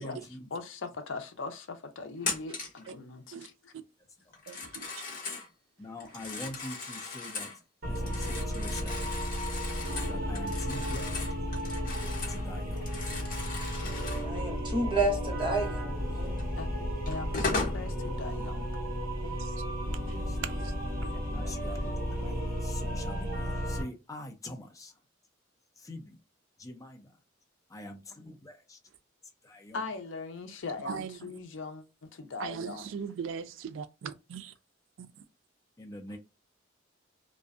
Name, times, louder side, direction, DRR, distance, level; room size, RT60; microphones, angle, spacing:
voice 1, 0.0-0.5 4.3-4.4 5.8-7.5 7.9-9.1 10.0-11.4 12.3-12.9 20.0-20.4 21.3-24.9 25.8-26.2 26.6-27.1 27.7-28.8 29.4-29.8 35.8-36.2, left 1 dB, 20° left, 0.4 m, -44 dB
voice 2, 0.5-3.7 16.6-16.7 17.1-18.8 29.7-32.9, left 4 dB, 70° left, 0.5 m, -40 dB
Telephone, 2.2-2.8 4.3-5.5 6.0-7.6 8.0-12.4 12.7-14.3 16.4-16.5 17.1-17.8, left 4 dB, 45° left, 0.9 m, -37 dB
voice 3, 4.5-5.2 19.2-19.7 20.1-20.7 21.0-21.6 30.8-31.4 32.4-34.5 35.0-35.2, right 7 dB, 75° right, 0.3 m, -40 dB
sound 1, 7.8-23.8, equal, 50° right, 1.1 m, -33 dB
voice 4, 14.2-16.5, right 2 dB, 25° right, 0.9 m, -31 dB
2.5 x 2.1 x 2.4 m
head